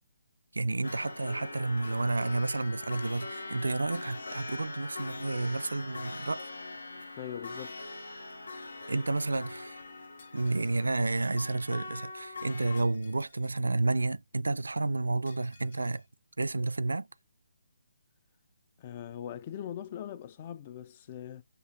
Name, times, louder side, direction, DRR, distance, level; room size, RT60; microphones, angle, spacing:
voice 1, 0.5-6.4 8.9-9.8 10.3-16.0 16.4-17.1, right 2 dB, 80° right, 0.4 m, -31 dB
sound 1, 0.8-12.8, left 2 dB, 75° left, 0.7 m, -42 dB
voice 2, 7.2-7.9 18.8-21.4, left 10 dB, 35° left, 0.4 m, -41 dB
Shatter, 10.2-11.0 12.8-13.6 15.3-16.1, left 4 dB, 55° left, 1.2 m, -60 dB
6.7 x 2.4 x 2.6 m
figure-of-eight pair, 145°, 0 cm